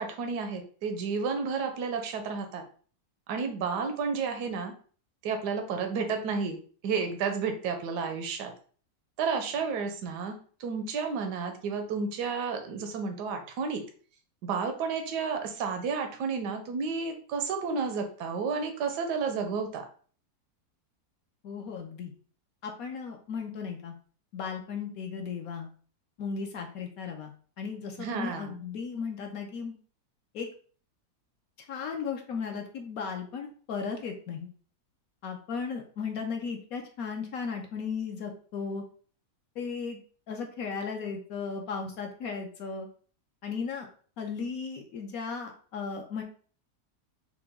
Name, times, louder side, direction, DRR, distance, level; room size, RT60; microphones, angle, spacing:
voice 1, 0.0-2.6 3.3-4.7 5.2-6.6 6.8-8.5 9.2-10.3 10.6-13.8 14.4-19.8 28.0-28.6, right 5 dB, 90° right, 5 dB, 1.3 m, -31 dB
voice 2, 21.4-22.1 22.6-23.9 24.3-25.7 26.2-27.3 27.6-29.7 30.3-30.5 31.7-34.5 35.2-38.8 39.6-40.0 40.3-42.9 43.4-43.9 44.2-46.2, left 5 dB, 70° left, 2 dB, 1.0 m, -36 dB
5.8 x 2.2 x 3.5 m, 0.43 s
omnidirectional pair, 1.7 m